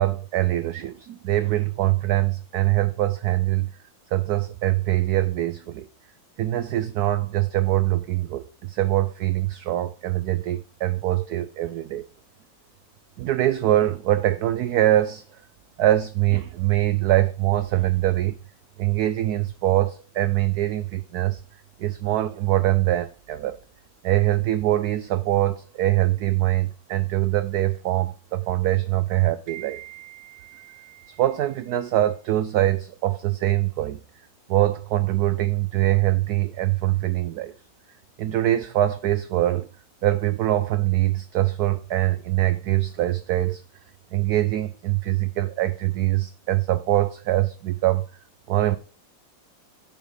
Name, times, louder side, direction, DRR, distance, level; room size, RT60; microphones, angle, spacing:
voice 1, 0.0-3.7 4.1-5.9 6.4-12.1 13.2-15.2 15.8-18.4 18.8-21.4 21.8-23.6 24.0-34.0 34.5-37.5 38.2-39.7 40.0-43.6 44.1-48.0 48.5-48.8, right 14 dB, 75° right, 0.9 m, -23 dB
10.5 x 4.4 x 5.0 m
omnidirectional pair, 2.1 m